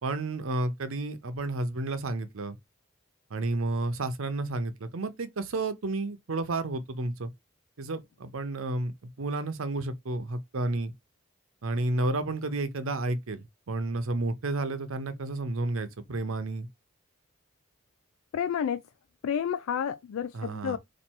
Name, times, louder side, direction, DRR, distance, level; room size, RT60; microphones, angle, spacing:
voice 1, 0.0-2.6 3.3-7.3 7.8-10.9 11.6-16.7 20.3-20.8, right 2 dB, 85° right, 0.7 m, -31 dB
voice 2, 18.3-18.8 19.2-20.8, left 8 dB, 85° left, 0.3 m, -30 dB
4.3 x 2.6 x 4.4 m
head